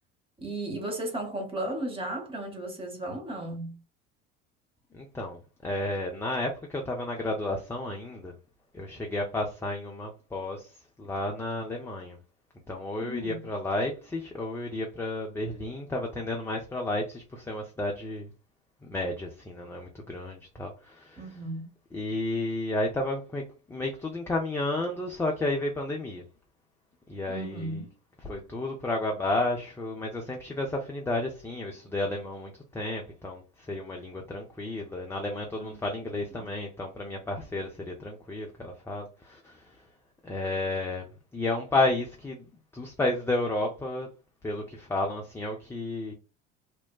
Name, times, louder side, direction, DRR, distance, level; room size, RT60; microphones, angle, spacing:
voice 1, 0.4-3.8 13.0-13.4 21.2-21.7 27.3-27.9 35.6-35.8 36.1-36.5, right 1 dB, 15° right, 0.8 m, -35 dB
voice 2, 4.9-8.3 8.7-12.2 12.7-18.3 18.8-21.2 21.9-26.2 27.1-27.8 28.2-39.8 40.2-42.5 42.7-44.1 44.4-46.1, left 2 dB, 5° left, 0.4 m, -32 dB
2.7 x 2.1 x 2.3 m
figure-of-eight pair, 65°, 35 cm